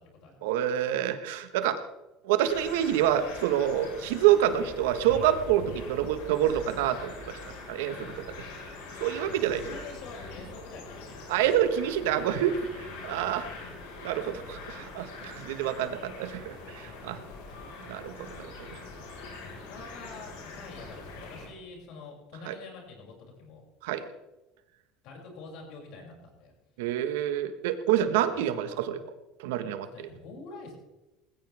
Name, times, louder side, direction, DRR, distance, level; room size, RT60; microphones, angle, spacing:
voice 1, 0.4-1.8 2.2-7.4 7.7-8.1 9.0-9.6 11.3-12.5 13.0-13.4 14.0-17.2 17.8-18.8 22.5-22.6 23.8-24.0 26.8-29.0 29.4-29.9, right 11 dB, 85° right, 10 dB, 1.5 m, -27 dB
sound 1, 2.4-21.5, left 3 dB, 85° left, 5.2 m, -43 dB
voice 2, 9.0-11.5 12.1-13.8 16.9-17.4 19.4-23.1 23.4-23.6 25.0-26.5 28.2-28.8 29.9-30.7, left 4 dB, 65° left, 0 dB, 6.8 m, -47 dB
19.5 x 16.0 x 3.6 m, 1.0 s
supercardioid pair, 100°, 0 cm